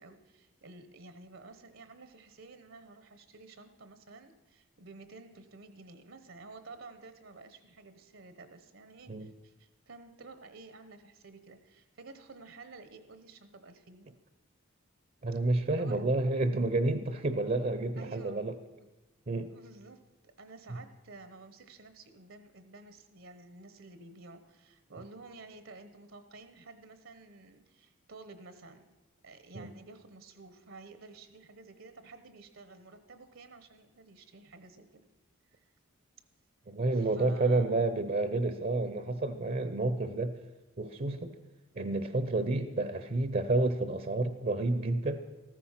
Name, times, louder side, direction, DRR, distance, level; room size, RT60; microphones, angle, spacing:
voice 1, 0.0-14.1 15.7-16.0 18.0-18.5 19.5-28.8 29.2-35.0 35.5-35.6 36.9-37.8, right 3 dB, 70° right, 10 dB, 1.0 m, -52 dB
voice 2, 15.2-18.6 19.3-19.5 29.5-29.7 36.7-40.3 40.8-41.3 41.7-45.2, right 2 dB, 40° right, 10 dB, 0.7 m, -30 dB
14.5 x 14.0 x 5.8 m, 1.1 s
head